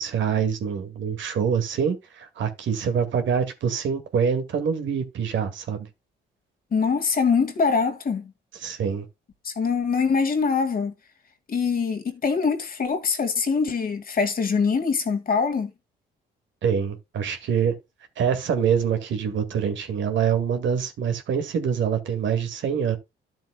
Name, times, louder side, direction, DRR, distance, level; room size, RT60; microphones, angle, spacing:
voice 1, 0.0-5.9 8.6-9.1 16.6-17.8 18.2-23.0, right 7 dB, 70° right, 2.0 m, -25 dB
voice 2, 6.7-8.3 9.4-10.9 11.5-15.7, left 5 dB, 45° left, 2.0 m, -23 dB
13.0 x 7.2 x 2.2 m
cardioid pair, 90°, 20 cm